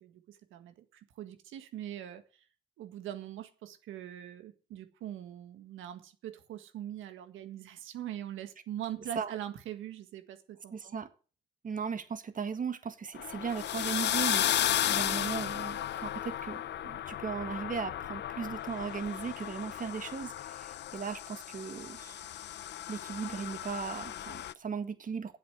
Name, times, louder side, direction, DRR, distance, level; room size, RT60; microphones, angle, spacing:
voice 1, 0.0-2.4 2.8-10.9, right 11 dB, 85° right, 1.7 m, -42 dB
voice 2, 10.7-11.1 11.6-22.2 22.9-25.4, right 6 dB, 40° right, 1.7 m, -37 dB
sound 1, 13.1-24.5, left 11 dB, 60° left, 0.6 m, -34 dB
9.4 x 8.0 x 8.0 m
cardioid pair, 90°, 20 cm